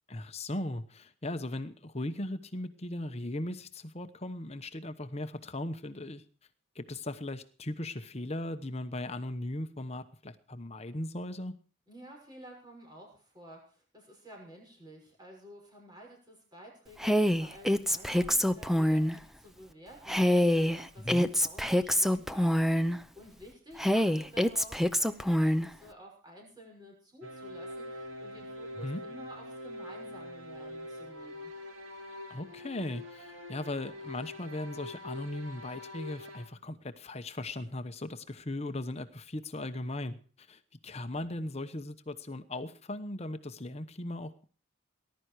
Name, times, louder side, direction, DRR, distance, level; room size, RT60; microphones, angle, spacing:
voice 1, 0.1-6.2 6.7-11.5 21.0-21.3 28.8-29.0 32.3-44.4, left 1 dB, 30° left, 9 dB, 0.9 m, -38 dB
voice 2, 11.9-21.1 21.4-31.5, equal, 20° right, 0 dB, 6.1 m, -52 dB
Female speech woman speaking, 17.0-19.1 20.1-23.0 23.8-25.7, equal, ahead, 0.6 m, -26 dB
sound 1, 27.2-36.5, left 1 dB, 70° right, 3.1 m, -44 dB
19.0 x 11.5 x 4.7 m, 0.42 s
head